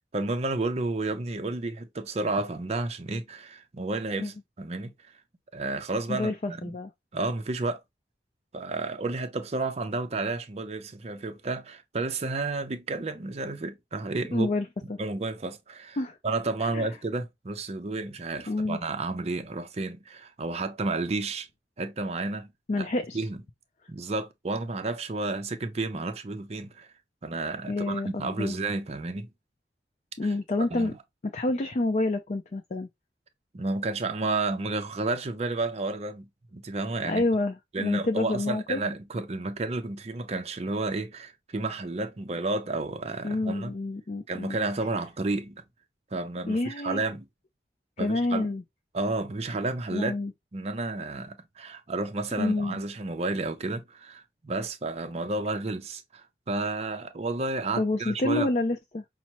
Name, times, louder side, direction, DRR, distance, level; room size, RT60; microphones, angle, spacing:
voice 1, 0.1-4.9 5.5-6.7 7.1-7.8 8.5-14.5 15.0-16.0 16.2-21.5 21.8-22.5 22.8-22.9 23.1-23.4 23.9-26.9 27.2-29.3 30.7-31.0 33.5-37.2 37.7-43.7 44.3-45.6 46.1-47.3 48.0-48.5 48.9-50.1 50.5-58.5, right 3 dB, 35° right, 0.5 m, -31 dB
voice 2, 6.1-6.9 14.3-15.0 16.0-16.2 16.6-16.9 18.5-18.8 22.7-23.2 27.7-28.6 30.2-30.9 31.3-32.9 37.0-38.8 43.2-44.6 46.4-47.0 48.0-48.6 49.9-50.3 52.4-52.8 57.8-59.2, left 2 dB, 40° left, 0.4 m, -28 dB
5.7 x 2.0 x 2.9 m
head